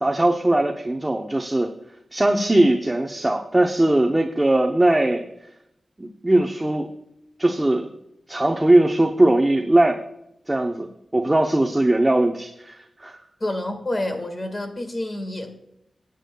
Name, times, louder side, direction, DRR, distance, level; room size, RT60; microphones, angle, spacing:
voice 1, 0.0-1.7 2.1-5.2 6.0-6.9 7.4-7.9 8.3-10.0 10.5-10.9 11.1-13.2, right 1 dB, 15° right, 2 dB, 0.7 m, -20 dB
voice 2, 13.4-15.6, left 1 dB, 30° left, 6 dB, 1.7 m, -28 dB
18.0 x 8.3 x 2.3 m, 0.80 s
wide cardioid pair, 145°, 0 cm